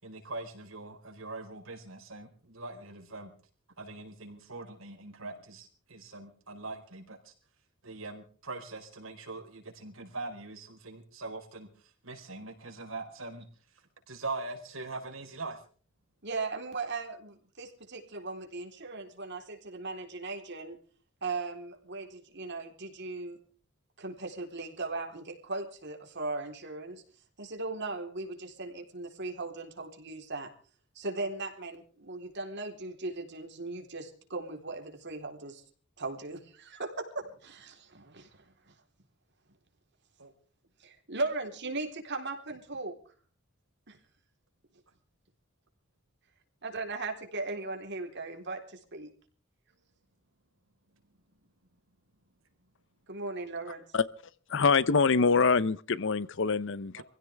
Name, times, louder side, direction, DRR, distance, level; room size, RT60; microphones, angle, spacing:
voice 1, 0.0-3.3 3.8-7.3 7.8-11.7 12.0-13.4 14.1-15.6 40.2-40.3 57.0-57.1, right 3 dB, 75° right, 4.5 m, -42 dB
voice 2, 16.2-20.8 21.2-23.4 24.0-27.0 27.4-30.5 31.0-35.6 36.0-38.4 40.8-42.9 43.9-44.0 46.6-49.1 53.1-53.8, right 3 dB, 60° right, 3.9 m, -38 dB
voice 3, 54.5-57.0, left 5 dB, 65° left, 0.8 m, -25 dB
25.0 x 16.0 x 3.5 m
head